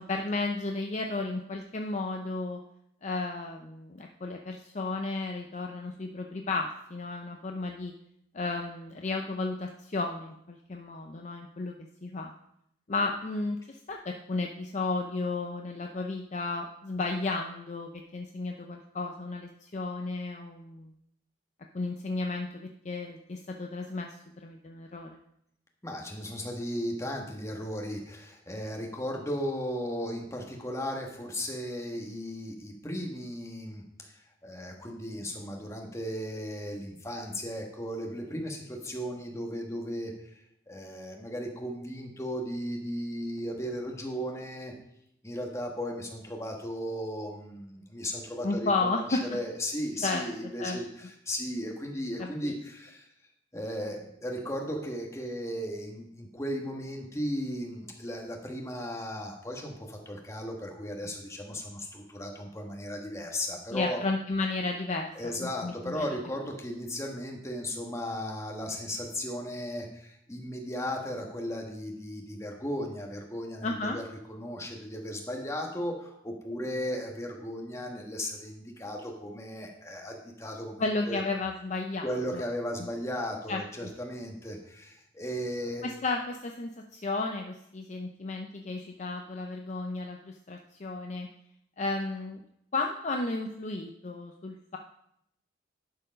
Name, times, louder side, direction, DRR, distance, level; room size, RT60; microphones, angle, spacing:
voice 1, 0.0-2.6 3.0-7.9 8.3-11.7 12.0-12.3 12.9-20.9 21.7-24.1 24.4-25.2 48.4-49.2 50.0-50.2 50.6-50.8 52.2-52.5 63.7-65.1 65.4-66.1 73.6-74.0 80.8-82.0 82.3-82.4 82.8-82.9 83.5-83.9 85.8-91.3 91.8-92.4 92.7-94.8, left 3 dB, 40° left, 3 dB, 0.5 m, -33 dB
voice 2, 25.8-40.4 40.7-44.7 45.2-53.1 53.5-64.0 65.1-81.2 82.0-85.9, equal, 15° left, 1 dB, 1.3 m, -36 dB
11.0 x 4.6 x 5.1 m, 0.75 s
head